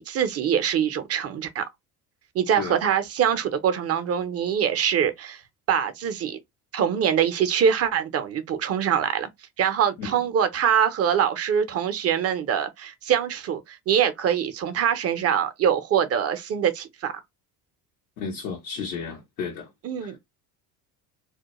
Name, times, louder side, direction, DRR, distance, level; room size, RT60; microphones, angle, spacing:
voice 1, 0.0-1.6 2.3-5.4 5.7-6.4 6.7-9.3 9.6-17.1 19.8-20.2, right 8 dB, 30° right, 0.5 m, -24 dB
voice 2, 10.0-10.3 18.2-19.7 20.0-20.2, left 5 dB, 90° left, 0.8 m, -33 dB
2.2 x 2.1 x 2.9 m
hypercardioid pair, 70°, 50 cm